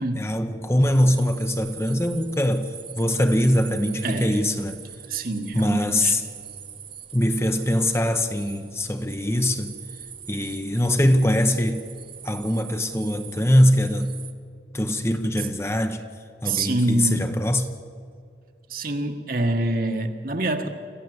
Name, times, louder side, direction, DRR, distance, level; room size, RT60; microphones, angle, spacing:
voice 1, 0.2-4.8 5.5-6.2 7.1-9.8 10.3-11.8 12.2-14.1 14.7-16.0 16.4-17.7, left 1 dB, 15° left, 0.9 m, -22 dB
sound 1, 0.8-14.3, right 9 dB, 30° right, 1.0 m, -42 dB
voice 2, 4.0-4.4 5.1-6.1 16.4-17.3 18.7-20.7, right 2 dB, 50° right, 1.6 m, -26 dB
26.0 x 15.0 x 7.9 m
head